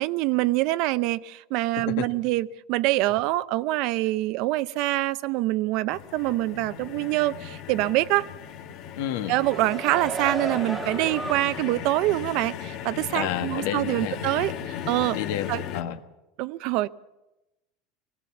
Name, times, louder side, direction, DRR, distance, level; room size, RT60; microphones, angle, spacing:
voice 1, 0.0-8.3 9.3-15.2 15.5-15.6 16.4-16.9, right 17 dB, 55° right, 0.6 m, -25 dB
sound 1, 5.9-15.8, left 9 dB, 55° left, 1.3 m, -37 dB
voice 2, 9.0-9.4 13.1-14.2 15.1-16.0, left 11 dB, 75° left, 1.4 m, -30 dB
sound 2, 9.2-11.9 12.3-12.4, right 3 dB, 15° right, 1.4 m, -34 dB
21.0 x 17.5 x 7.1 m
supercardioid pair, 145°, 0 cm